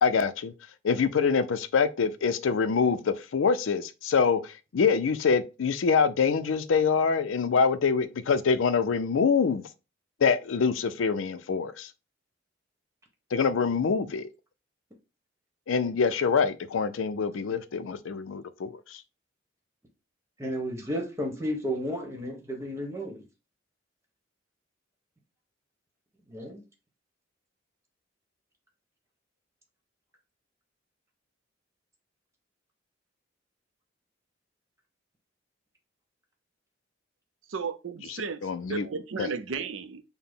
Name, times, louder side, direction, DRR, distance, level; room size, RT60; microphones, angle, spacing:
voice 1, 0.0-0.5 0.8-9.7 10.2-11.9 13.3-14.3 15.7-19.0 38.1-38.9 39.2-39.3, left 5 dB, 85° left, 0.4 m, -25 dB
voice 2, 20.4-23.2 26.3-26.6, equal, 15° right, 1.1 m, -33 dB
voice 3, 37.5-38.4 38.7-40.0, right 5 dB, 85° right, 0.5 m, -34 dB
5.8 x 2.1 x 3.6 m
head